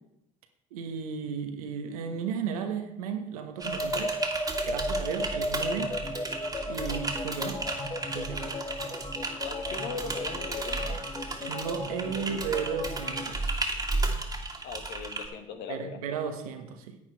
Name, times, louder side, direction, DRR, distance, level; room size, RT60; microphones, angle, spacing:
voice 1, 0.7-4.1 4.6-6.0 6.7-7.6 8.1-8.5 11.4-13.7 15.7-17.0, right 6 dB, 85° right, 7 dB, 1.2 m, -34 dB
sound 1, 3.5-13.4, left 1 dB, 25° left, 1.3 m, -35 dB
Typing, 3.6-15.3, right 2 dB, 20° right, 1.9 m, -34 dB
voice 2, 9.4-11.0 14.6-16.0, left 6 dB, 65° left, 7 dB, 1.4 m, -39 dB
9.8 x 9.1 x 4.5 m, 0.82 s
hypercardioid pair, 60°, 18 cm